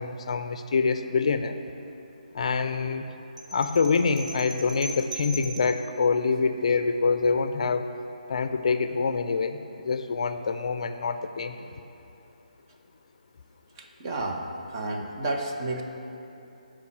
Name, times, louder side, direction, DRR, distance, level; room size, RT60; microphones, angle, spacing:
voice 1, 0.0-1.6 2.3-3.1 3.5-7.9 8.3-11.6, left 4 dB, 50° left, 9 dB, 0.4 m, -26 dB
sound 1, 3.4-5.8, right 2 dB, 70° right, 1.7 m, -39 dB
voice 2, 13.8-14.5 14.7-15.8, right 2 dB, 30° right, 1 dB, 0.9 m, -31 dB
9.5 x 5.0 x 7.3 m, 2.9 s
figure-of-eight pair, 150°, 4 cm